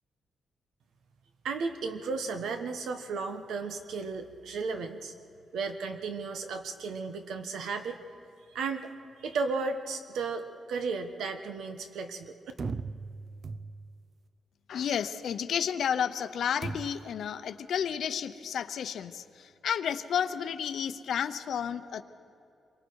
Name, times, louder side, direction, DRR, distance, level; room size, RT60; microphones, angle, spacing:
voice 1, 1.4-5.1 5.5-8.0 8.5-8.9 9.2-12.3, right 4 dB, 85° right, 7 dB, 1.3 m, -34 dB
sound 1, 12.6-14.1 16.6-17.2, right 4 dB, 40° right, 0.5 m, -38 dB
voice 2, 14.7-22.0, left 8 dB, 70° left, 12 dB, 0.7 m, -31 dB
26.5 x 23.0 x 4.8 m, 2.5 s
wide cardioid pair, 150°, 0 cm